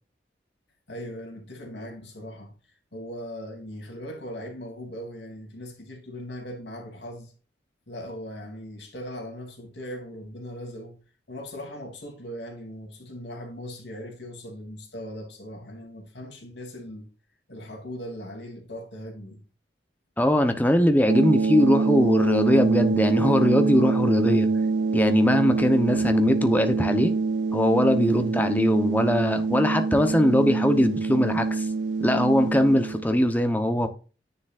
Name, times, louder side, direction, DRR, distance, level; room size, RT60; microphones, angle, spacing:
voice 1, 0.9-2.6 2.9-7.3 7.9-11.0 11.3-17.1 17.5-19.4, equal, 70° left, 3.1 m, -39 dB
voice 2, 20.2-24.5 24.9-27.1 27.5-31.7 32.0-33.9, left 1 dB, 10° left, 0.9 m, -21 dB
sound 1, 21.1-33.0, right 4 dB, 80° right, 0.4 m, -25 dB
9.9 x 7.0 x 2.5 m
head